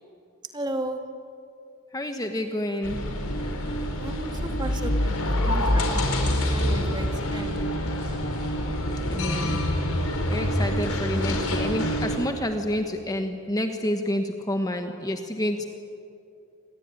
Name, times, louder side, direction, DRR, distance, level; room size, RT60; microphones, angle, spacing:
voice 1, 0.5-1.0 4.0-5.1 5.4-6.0 6.3-7.5, right 1 dB, 20° right, 4 dB, 2.1 m, -34 dB
voice 2, 1.9-3.0 9.1-9.6 10.3-15.7, left 1 dB, 15° left, 5 dB, 1.2 m, -29 dB
sound 1, 2.8-12.2, left 1 dB, 85° left, 4.6 m, -26 dB
27.0 x 20.0 x 9.8 m, 2.7 s
head